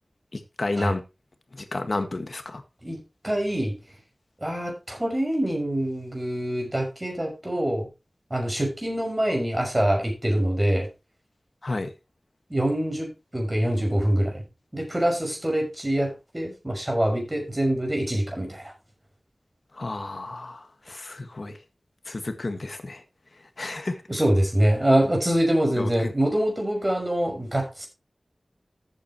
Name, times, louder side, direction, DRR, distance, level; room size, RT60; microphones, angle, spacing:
voice 1, 0.3-1.0 1.6-2.6 11.6-11.9 19.8-21.6 22.1-23.0 23.6-24.0 25.8-26.1, left 2 dB, 60° left, 1.7 m, -31 dB
voice 2, 2.8-3.8 4.4-7.9 8.3-10.9 12.5-14.4 14.7-18.6 24.1-27.9, right 1 dB, 25° right, 5.8 m, -25 dB
14.0 x 8.6 x 3.0 m
wide cardioid pair, 55°, 0 cm